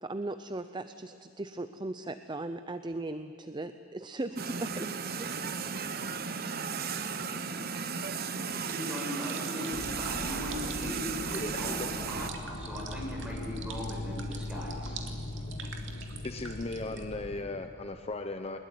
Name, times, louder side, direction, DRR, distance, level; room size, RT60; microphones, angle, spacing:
voice 1, 0.0-5.3, right 2 dB, 20° right, 10 dB, 0.6 m, -38 dB
sound 1, 4.4-12.3, right 5 dB, 50° right, 1.0 m, -35 dB
voice 2, 8.3-15.0, left 1 dB, 5° right, -3 dB, 7.9 m, -39 dB
sound 2, 8.7-17.0, right 5 dB, 65° right, 2.6 m, -46 dB
sound 3, 9.7-17.4, left 1 dB, 55° left, 1.6 m, -40 dB
voice 3, 11.3-11.9 16.2-18.6, left 2 dB, 30° left, 7 dB, 0.9 m, -37 dB
21.5 x 21.0 x 9.5 m, 2.7 s
head